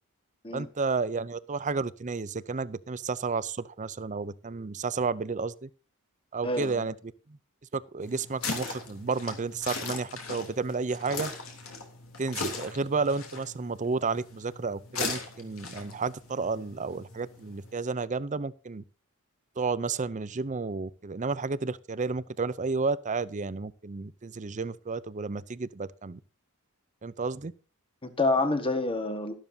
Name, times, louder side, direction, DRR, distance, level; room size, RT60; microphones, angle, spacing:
voice 1, 0.5-5.7 6.3-6.9 7.3-7.4 7.7-11.3 12.2-18.8 19.6-26.2 27.0-27.5, right 4 dB, 35° right, 0.6 m, -31 dB
voice 2, 6.4-6.8 28.0-29.3, left 2 dB, 25° left, 1.7 m, -27 dB
sound 1, 8.0-17.7, left 4 dB, 70° left, 3.3 m, -39 dB
12.5 x 12.5 x 2.8 m
head